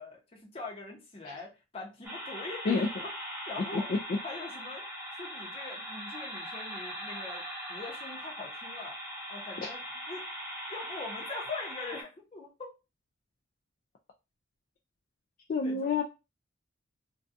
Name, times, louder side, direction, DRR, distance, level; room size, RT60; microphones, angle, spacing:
voice 1, 0.0-2.9 3.5-3.9 4.2-4.9 5.1-7.4 7.7-8.9 9.3-9.8 10.1-10.2 10.7-12.7 15.6-15.9, left 3 dB, 30° left, -1 dB, 0.7 m, -42 dB
sound 1, 2.0-12.0, equal, 10° right, 0.6 m, -40 dB
voice 2, 15.5-16.0, left 4 dB, 45° left, 1 dB, 0.3 m, -28 dB
2.6 x 2.2 x 2.5 m, 0.28 s
head